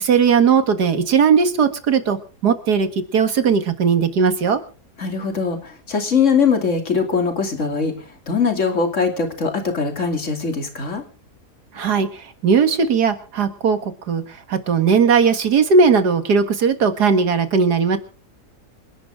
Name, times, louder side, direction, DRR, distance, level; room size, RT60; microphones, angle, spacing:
voice 1, 0.0-2.2 2.4-4.6 11.8-12.1 12.4-14.2 14.5-18.0, right 5 dB, 80° right, 9 dB, 2.2 m, -17 dB
voice 2, 5.0-7.9 8.3-11.0, left 5 dB, 50° left, 5 dB, 3.1 m, -21 dB
27.0 x 11.5 x 3.7 m, 0.38 s
omnidirectional pair, 1.7 m